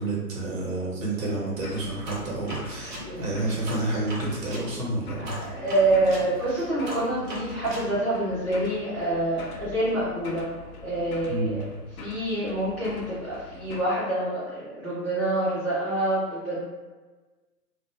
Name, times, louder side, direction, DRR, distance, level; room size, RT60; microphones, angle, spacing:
voice 1, 0.0-5.4 10.7-10.8 11.3-11.6, right 2 dB, 55° right, -4 dB, 0.8 m, -29 dB
sound 1, 1.6-13.8, left 3 dB, 65° left, 0.5 m, -43 dB
sound 2, 2.0-4.7 5.2-7.9, right 1 dB, 35° right, 0.7 m, -39 dB
voice 2, 5.3-10.5 10.8-11.6 12.0-16.6, right 1 dB, 10° left, -15 dB, 0.4 m, -26 dB
2.1 x 2.0 x 3.0 m, 1.3 s
hypercardioid pair, 135°, 46 cm